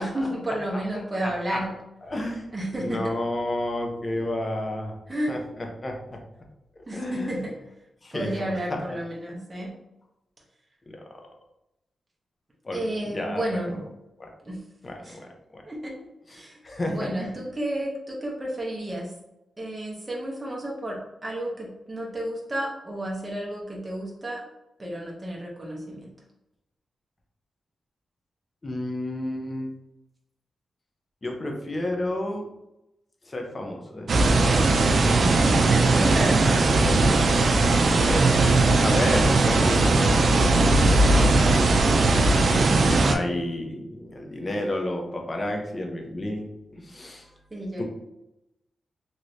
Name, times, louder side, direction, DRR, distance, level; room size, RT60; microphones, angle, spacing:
voice 1, 0.0-1.7 2.5-3.1 5.1-5.4 6.9-7.5 8.1-9.7 12.7-13.8 14.4-14.6 15.0-15.2 15.7-15.9 16.3-16.6 16.9-19.1 19.6-24.5 24.8-26.1 35.2-36.7 42.4-43.1 47.5-47.8, right 1 dB, 20° right, -3 dB, 0.7 m, -31 dB
voice 2, 1.2-1.6 2.0-2.5 2.8-4.9 5.3-6.2 6.8-7.4 8.0-8.3 8.9-9.0 10.9-11.0 12.6-13.8 14.2-14.3 14.8-15.6 16.6-17.3 28.6-29.7 31.2-32.5 33.3-34.7 36.3-36.4 36.6-37.0 37.3-42.0 42.8-47.3 47.8-47.9, left 1 dB, 30° left, 1 dB, 0.7 m, -31 dB
sound 1, 34.1-43.2, right 2 dB, 60° right, 0.4 m, -19 dB
3.1 x 2.9 x 2.6 m, 0.90 s
cardioid pair, 85°, 0 cm